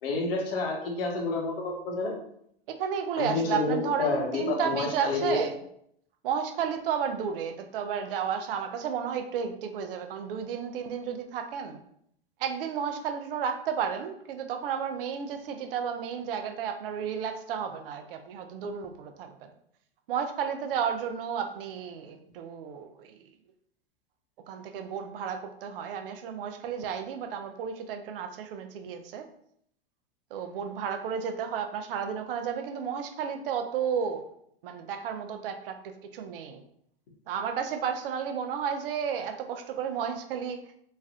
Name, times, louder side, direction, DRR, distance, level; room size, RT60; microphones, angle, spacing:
voice 1, 0.0-2.1 3.2-5.4, left 3 dB, 65° left, 0 dB, 0.9 m, -29 dB
voice 2, 2.7-5.6 6.2-11.8 12.4-19.5 20.1-23.2 24.5-29.3 30.3-34.2 34.6-35.8 36.1-36.6 37.3-40.6, right 7 dB, 65° right, 7 dB, 0.5 m, -32 dB
3.1 x 2.4 x 2.4 m, 0.70 s
hypercardioid pair, 105°, 30 cm